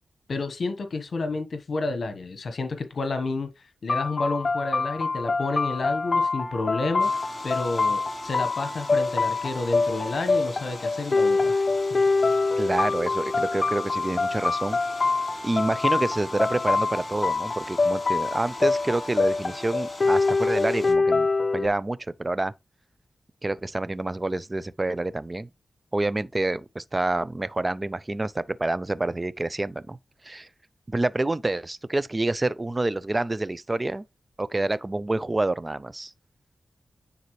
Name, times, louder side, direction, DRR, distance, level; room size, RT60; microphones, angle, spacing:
voice 1, 0.3-3.5 3.8-11.6, left 3 dB, 70° left, 1.1 m, -30 dB
sound 1, 3.9-21.7, left 3 dB, 50° left, 0.7 m, -25 dB
sound 2, 7.0-20.9, left 1 dB, 15° left, 4.4 m, -43 dB
voice 2, 12.6-14.8 15.4-21.3 21.5-22.5 23.4-25.5 25.9-30.0 30.2-30.5 30.9-34.1 34.4-36.1, right 2 dB, 30° right, 0.6 m, -27 dB
9.5 x 4.1 x 3.1 m
cardioid pair, 55°, 0 cm